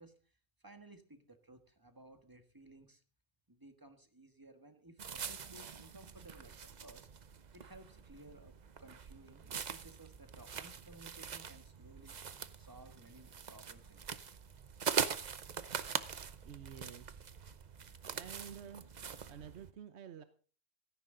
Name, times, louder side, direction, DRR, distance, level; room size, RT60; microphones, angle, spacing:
voice 1, 0.0-3.0 3.5-7.1 7.5-8.5 8.8-12.2 12.5-14.2, right 2 dB, 20° right, 8 dB, 1.5 m, -58 dB
sound 1, 5.0-19.7, right 6 dB, 45° right, 0.8 m, -43 dB
voice 2, 16.4-17.5 18.1-19.0 19.3-20.2, right 8 dB, 85° right, 11 dB, 1.1 m, -51 dB
16.5 x 13.5 x 3.8 m, 0.39 s
omnidirectional pair, 1.1 m